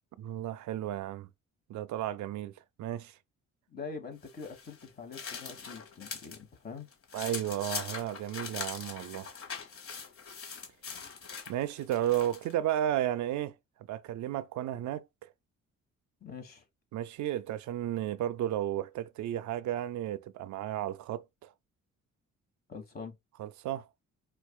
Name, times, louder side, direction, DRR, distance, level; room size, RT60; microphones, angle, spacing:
voice 1, 0.2-1.3 1.7-2.5 2.8-3.2 7.1-9.3 11.5-13.6 13.9-15.3 16.9-21.5 23.4-23.9, right 12 dB, 70° right, 0.5 m, -33 dB
voice 2, 3.7-6.9 16.2-16.6 22.7-23.1, left 5 dB, 30° left, 1.4 m, -44 dB
sound 1, 4.2-6.4 6.8-12.5, left 5 dB, 50° left, 1.2 m, -42 dB
4.6 x 2.4 x 2.3 m
cardioid pair, 90°, 30 cm